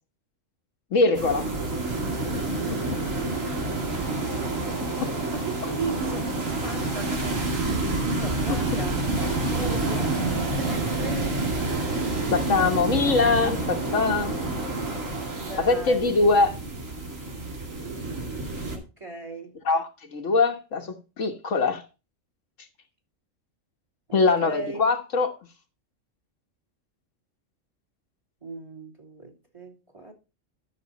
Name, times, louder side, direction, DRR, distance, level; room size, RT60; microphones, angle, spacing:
voice 1, 0.9-1.5 2.3-2.8 5.0-5.1 12.3-14.4 15.6-16.5 19.6-21.8 24.1-25.3, left 3 dB, 75° left, 1.6 m, -23 dB
sound 1, 1.1-18.8, right 2 dB, 85° right, 2.8 m, -28 dB
voice 2, 5.3-11.4 15.4-16.2 18.6-19.6 24.1-24.8 28.4-30.1, right 3 dB, 25° right, 2.9 m, -38 dB
12.5 x 6.5 x 4.1 m
omnidirectional pair, 1.3 m